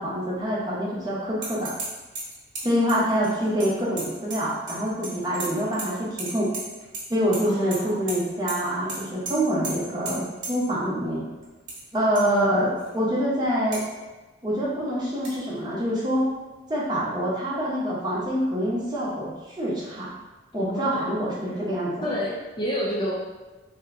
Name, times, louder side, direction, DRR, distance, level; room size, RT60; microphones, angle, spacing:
voice 1, 0.0-1.7 2.6-6.5 7.1-11.2 11.9-13.8 14.4-16.3 16.7-20.1 20.5-22.1, equal, 20° right, -7 dB, 0.9 m, -26 dB
sound 1, 1.4-1.9 2.2-4.8 5.0-5.9 6.2-7.0 7.3-7.8 8.1-8.2 8.5-8.6 8.9-9.0 9.3-9.4 9.6-9.7 10.1-10.2 10.4-10.5 11.4-11.8 12.2-12.3 12.8-12.9 13.7-13.8 15.2-15.3, right 3 dB, 60° right, 1.1 m, -34 dB
voice 2, 7.4-8.0 12.3-12.7 20.5-21.1 22.0-23.1, equal, 25° left, -4 dB, 0.5 m, -30 dB
3.4 x 2.8 x 3.6 m, 1.2 s
head